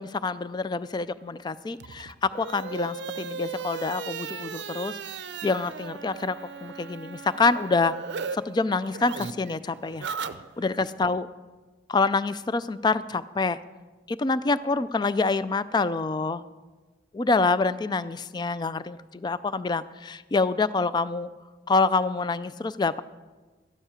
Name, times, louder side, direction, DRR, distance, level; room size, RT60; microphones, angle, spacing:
voice 1, 0.0-5.0 5.4-6.4 6.6-7.9 8.3-10.1 10.6-11.3 11.9-13.6 14.1-16.4 17.1-21.3 21.7-23.0, left 3 dB, 25° left, 15 dB, 0.3 m, -26 dB
sound 1, 1.7-8.4 8.6-10.9, right 5 dB, 65° right, 0.5 m, -37 dB
13.0 x 10.0 x 5.0 m, 1.3 s
head